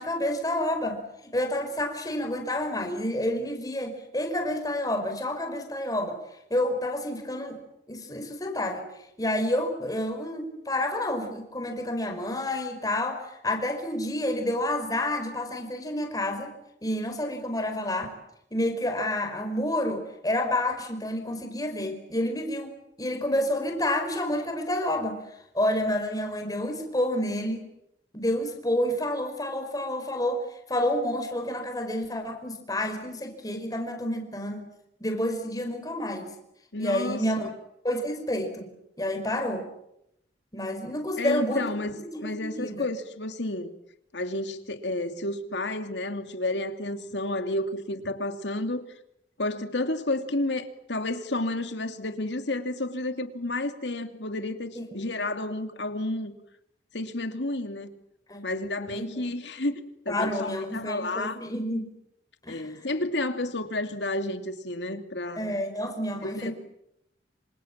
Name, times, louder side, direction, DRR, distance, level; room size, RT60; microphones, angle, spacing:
voice 1, 0.0-6.2 6.5-7.6 7.9-8.9 9.2-16.5 16.8-18.1 18.5-25.2 25.5-27.6 28.1-34.7 35.0-36.3 36.8-37.5 37.8-38.7 39.0-39.7 40.5-41.7 42.1-42.9 54.7-55.0 58.3-58.4 58.9-59.2 60.1-61.9 62.4-62.9 65.4-66.5, left 1 dB, 20° left, 5.1 m, -29 dB
voice 2, 36.7-37.5 41.2-43.7 44.1-48.9 49.4-56.3 56.9-57.9 58.4-61.4 62.5-65.5 66.2-66.5, left 2 dB, 75° left, 2.7 m, -31 dB
27.0 x 26.5 x 7.4 m
head